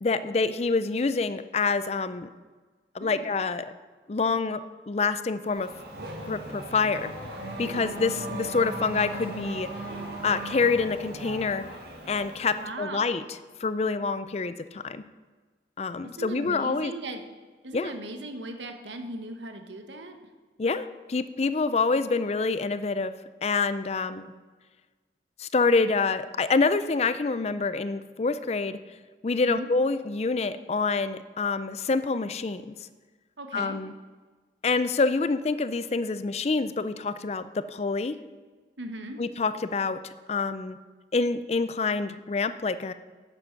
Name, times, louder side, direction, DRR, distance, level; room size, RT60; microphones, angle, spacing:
voice 1, 0.0-2.3 2.9-3.7 4.1-4.6 4.9-5.7 6.3-7.1 7.6-9.7 10.2-11.6 12.1-13.2 13.6-15.0 15.8-16.9 17.7-17.9 20.6-23.1 23.4-24.3 25.4-28.8 29.2-32.8 33.5-33.9 34.6-38.2 39.2-40.0 40.3-40.8 41.1-42.9, left 4 dB, 35° left, 13 dB, 0.4 m, -26 dB
Race car auto racing / Accelerating revving vroom, 5.5-12.7, right 1 dB, 60° right, 2.0 m, -38 dB
voice 2, 12.5-13.3 16.0-17.2 17.6-20.2 29.4-29.7 33.4-33.8 38.8-39.2, right 1 dB, 90° right, 6 dB, 1.2 m, -38 dB
10.5 x 7.8 x 5.8 m, 1.4 s
head